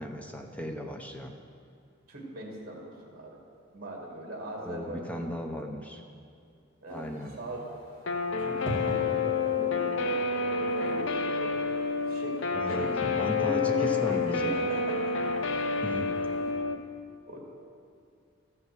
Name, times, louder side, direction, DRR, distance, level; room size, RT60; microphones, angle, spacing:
voice 1, 0.0-1.4 4.6-6.0 6.9-7.4 12.5-12.9 13.2-14.5 15.8-16.2, equal, 5° left, 3 dB, 0.6 m, -36 dB
voice 2, 2.1-3.4 3.7-5.3 6.8-7.6 8.4-11.5 12.0-13.0 13.4-14.9 17.3-17.4, right 1 dB, 45° right, -1 dB, 2.1 m, -39 dB
sound 1, 6.9-16.5, equal, 25° left, 2.6 m, -45 dB
Guitar, 8.1-16.8, left 4 dB, 65° left, 0.6 m, -29 dB
13.0 x 5.6 x 7.7 m, 2.3 s
head